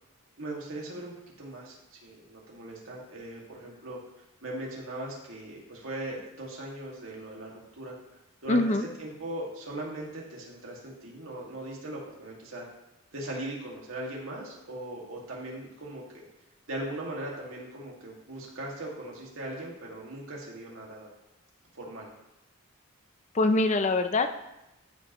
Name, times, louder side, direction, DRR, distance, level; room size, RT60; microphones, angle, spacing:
voice 1, 0.4-4.0 4.4-7.9 8.4-12.6 13.1-16.2 16.7-21.1 21.7-22.1, right 1 dB, 70° right, -3 dB, 2.2 m, -39 dB
voice 2, 8.5-8.9 23.3-24.3, left 2 dB, 35° left, 9 dB, 0.5 m, -24 dB
14.0 x 5.3 x 3.1 m, 0.91 s
head